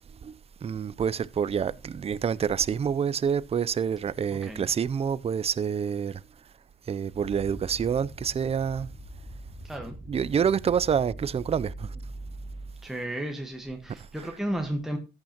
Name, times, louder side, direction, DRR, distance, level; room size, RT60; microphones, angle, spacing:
voice 1, 0.2-6.2 6.9-8.9 10.1-12.0 14.2-14.3, right 7 dB, 30° right, 0.4 m, -27 dB
voice 2, 4.3-4.7 9.6-10.0 12.8-15.0, right 1 dB, ahead, 1.3 m, -33 dB
sound 1, 7.1-12.9, right 1 dB, 30° left, 3.2 m, -42 dB
14.0 x 9.1 x 2.9 m
cardioid pair, 90°, 20 cm